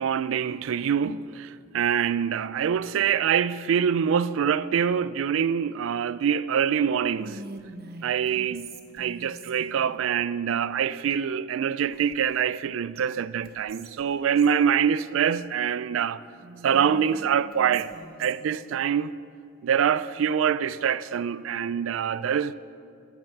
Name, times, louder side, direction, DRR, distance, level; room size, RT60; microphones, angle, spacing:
voice 1, 0.0-7.4 8.0-8.7 8.9-16.2 16.6-17.9 18.2-19.1 19.6-22.5, right 8 dB, 70° right, 0.3 m, -25 dB
Whispering, 7.1-9.9 11.9-12.7 13.0-13.1 13.4-14.6 16.4-18.6, right 2 dB, 50° right, 0.8 m, -44 dB
14.5 x 6.2 x 6.4 m
head